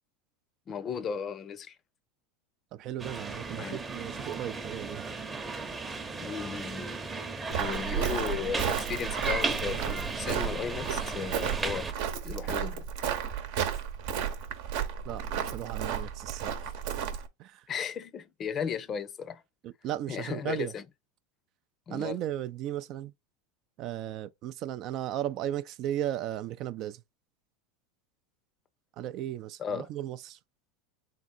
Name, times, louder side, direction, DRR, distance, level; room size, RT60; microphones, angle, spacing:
voice 1, 0.7-1.8 3.5-3.8 6.2-6.9 7.6-11.9 12.2-12.9 17.7-19.4 20.1-20.8 21.9-22.2 29.6-29.9, left 7 dB, 35° left, 0.6 m, -35 dB
voice 2, 2.7-5.1 15.0-16.7 17.4-17.7 19.6-20.7 21.9-23.1 23.8-27.0 29.0-30.4, right 12 dB, 50° right, 0.4 m, -36 dB
sound 1, 3.0-11.9, right 3 dB, 20° right, 0.8 m, -35 dB
Walk footsteps, 7.5-17.3, right 9 dB, 70° right, 0.9 m, -33 dB
3.7 x 2.5 x 4.2 m
hypercardioid pair, 100°, 0 cm